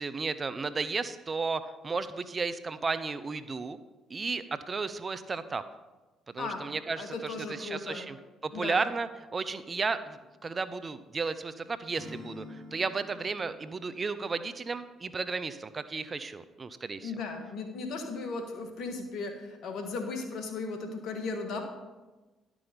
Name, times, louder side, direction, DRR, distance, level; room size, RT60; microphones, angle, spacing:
voice 1, 0.0-3.8 4.1-5.6 6.3-8.2 8.4-17.1, right 4 dB, 35° right, 13 dB, 0.6 m, -34 dB
voice 2, 7.0-8.1 8.5-8.8 17.0-21.6, left 3 dB, 70° left, 5 dB, 1.5 m, -36 dB
Acoustic guitar / Strum, 11.9-15.0, left 2 dB, 20° left, 3.5 m, -49 dB
11.0 x 6.2 x 5.2 m, 1.2 s
hypercardioid pair, 55°, 0 cm